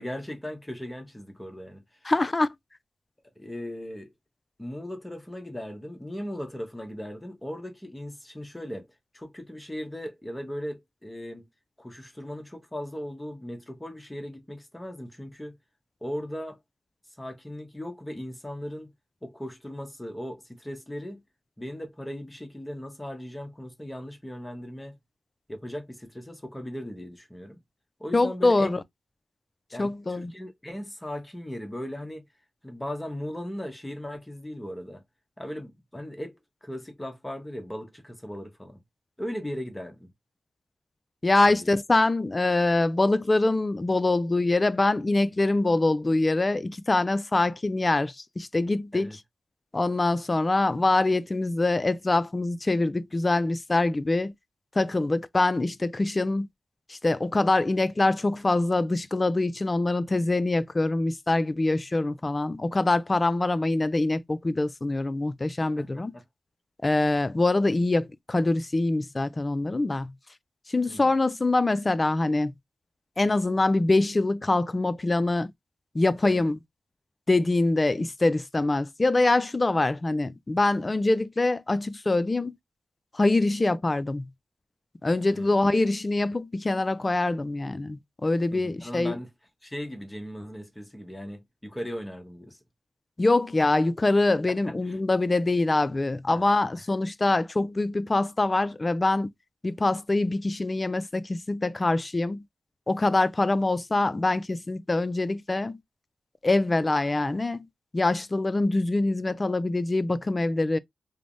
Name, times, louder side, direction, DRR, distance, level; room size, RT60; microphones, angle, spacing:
voice 1, 0.0-2.1 3.4-4.1 4.6-8.9 9.1-11.5 11.8-15.6 16.0-16.6 17.2-18.9 19.2-21.2 21.6-24.9 25.5-27.6 28.0-28.8 29.7-32.2 32.6-35.0 35.4-36.3 36.6-38.8 39.2-40.1 41.4-41.7 48.9-49.2 65.8-66.2 70.9-71.1 76.2-76.4 85.3-85.5 88.5-89.3 89.6-92.6 93.6-93.7 94.5-95.0 96.3-96.4, equal, 15° left, 0.8 m, -38 dB
voice 2, 2.0-2.5 28.1-28.8 29.8-30.3 41.2-49.1 49.7-54.3 54.8-56.5 56.9-66.1 66.8-70.1 70.7-72.5 73.2-75.5 75.9-76.6 77.3-82.5 83.1-84.3 85.0-89.2 93.2-99.3 99.6-102.4 102.9-105.8 106.4-107.7 107.9-110.8, left 2 dB, 30° left, 0.3 m, -24 dB
3.2 x 2.0 x 2.5 m
cardioid pair, 65°, 0 cm